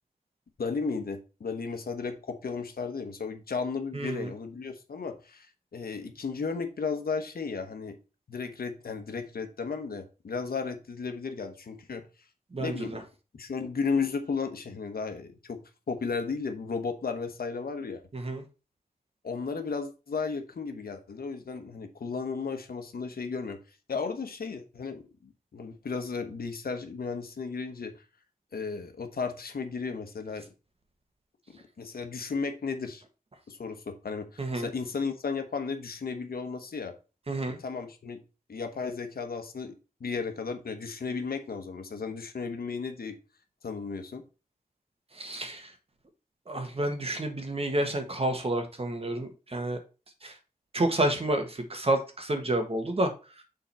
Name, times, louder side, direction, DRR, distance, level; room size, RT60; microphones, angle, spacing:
voice 1, 0.6-8.0 8.3-12.1 12.6-13.0 13.3-15.6 15.9-18.0 19.2-23.6 23.9-28.0 28.5-30.5 31.5-33.0 33.5-36.9 37.5-38.2 38.5-43.2 43.6-44.2, left 5 dB, 90° left, 7 dB, 1.1 m, -34 dB
voice 2, 3.9-4.3 12.5-13.0 18.1-18.4 34.4-34.7 37.3-37.6 45.2-45.7 46.5-49.8 50.2-50.3 50.7-53.1, right 1 dB, 40° right, 5 dB, 1.4 m, -29 dB
7.1 x 3.9 x 4.3 m, 0.32 s
wide cardioid pair, 110°, 15 cm